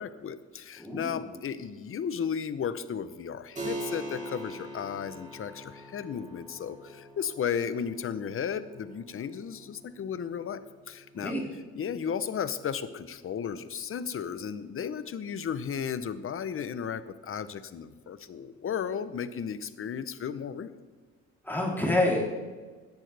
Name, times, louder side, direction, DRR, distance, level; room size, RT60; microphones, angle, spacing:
voice 1, 0.0-10.6 10.9-11.3 11.7-20.7, left 7 dB, 45° left, 13 dB, 0.8 m, -34 dB
voice 2, 0.8-1.2 11.1-11.4 21.4-22.3, left 1 dB, 5° left, -3 dB, 3.4 m, -27 dB
Keyboard (musical), 3.6-13.8, right 1 dB, 25° right, 3.5 m, -44 dB
16.5 x 10.5 x 3.4 m, 1.4 s
cardioid pair, 90°, 30 cm